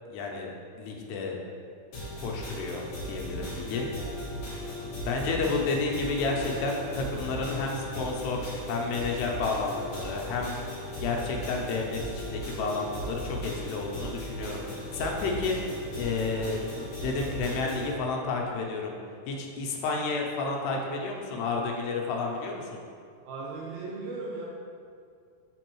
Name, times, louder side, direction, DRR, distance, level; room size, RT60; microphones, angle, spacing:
voice 1, 0.1-0.5 0.8-1.4 2.2-3.9 5.0-10.6 11.0-15.6 16.0-18.9 19.3-22.7, left 3 dB, 85° left, 0 dB, 2.8 m, -31 dB
sound 1, 1.9-17.9, equal, 55° left, 2.3 m, -37 dB
voice 2, 4.5-4.9 23.2-24.4, right 3 dB, 75° right, -5 dB, 2.4 m, -38 dB
5.8 x 5.3 x 3.0 m, 2.2 s
omnidirectional pair, 4.7 m